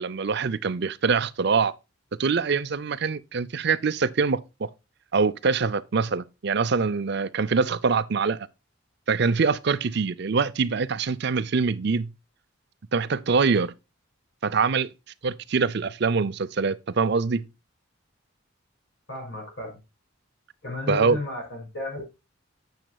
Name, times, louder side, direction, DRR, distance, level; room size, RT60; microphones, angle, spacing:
voice 1, 0.0-1.7 2.2-4.7 5.1-8.5 9.1-12.1 12.9-13.7 14.4-14.9 15.2-17.5 20.9-21.2, right 5 dB, 55° right, 0.5 m, -24 dB
voice 2, 19.1-19.8 20.6-22.1, left 2 dB, 55° left, 5.6 m, -33 dB
9.1 x 7.9 x 2.3 m
head